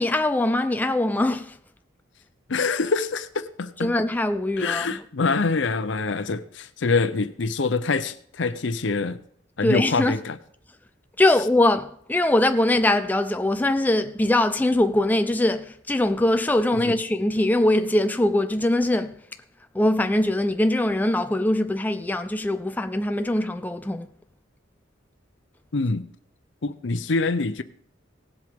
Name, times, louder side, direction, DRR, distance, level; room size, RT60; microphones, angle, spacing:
voice 1, 0.0-1.6 3.8-5.0 9.6-10.1 11.2-19.2 19.7-24.1, left 1 dB, 10° left, 0.4 m, -22 dB
voice 2, 2.5-3.9 4.6-9.2 9.6-10.4 16.7-16.9 25.7-26.1 26.6-27.6, left 4 dB, 70° left, 0.7 m, -25 dB
18.0 x 7.8 x 3.6 m
head